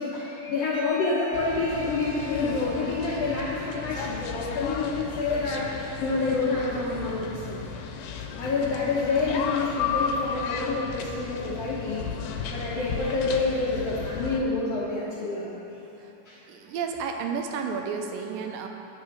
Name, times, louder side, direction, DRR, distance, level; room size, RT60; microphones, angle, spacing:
voice 1, 0.0-7.6 8.3-12.0 12.3-15.5 16.3-16.4, left 3 dB, 70° left, -7 dB, 1.5 m, -28 dB
sound 1, 0.7-9.4, right 6 dB, 35° left, 2.0 m, -47 dB
sound 2, 1.3-14.4, left 6 dB, 90° left, 2.4 m, -34 dB
voice 2, 16.5-18.7, right 6 dB, 85° right, 4 dB, 2.3 m, -32 dB
9.2 x 6.5 x 5.9 m, 3.0 s
omnidirectional pair, 4.0 m